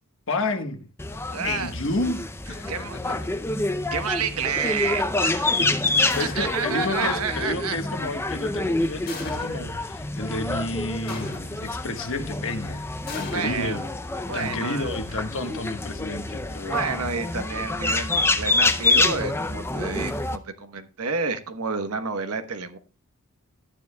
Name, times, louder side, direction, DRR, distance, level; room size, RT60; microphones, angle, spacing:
voice 1, 0.3-0.8 1.4-2.2 2.5-3.3 5.6-5.8 6.1-11.3 11.6-13.9 14.3-16.9, left 2 dB, 60° left, 1.2 m, -31 dB
sound 1, 1.0-20.4, left 2 dB, 10° left, 0.4 m, -27 dB
voice 2, 1.3-1.7 2.7-3.2 3.9-5.5 5.8-5.9 6.2-7.8 13.3-13.8 14.3-15.2 16.7-22.8, right 5 dB, 85° right, 1.1 m, -30 dB
sound 2, 6.1-6.8 9.1-9.9 11.1-11.8 13.1-14.3, left 2 dB, 45° left, 2.5 m, -38 dB
13.0 x 9.5 x 2.2 m
head